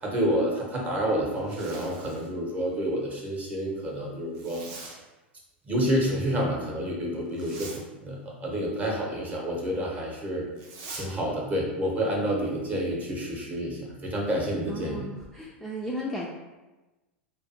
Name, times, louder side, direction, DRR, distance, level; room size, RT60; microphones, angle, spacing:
voice 1, 0.0-4.6 5.7-7.7 8.0-10.5 10.9-15.0, equal, 25° right, -2 dB, 0.7 m, -29 dB
Zipper (clothing), 1.3-2.3 4.3-5.0 7.3-7.8 10.5-11.1, right 3 dB, 50° right, 0.5 m, -43 dB
voice 2, 14.7-16.3, equal, 5° left, -5 dB, 0.3 m, -35 dB
2.5 x 2.4 x 2.5 m, 1.1 s
figure-of-eight pair, 90°, 6 cm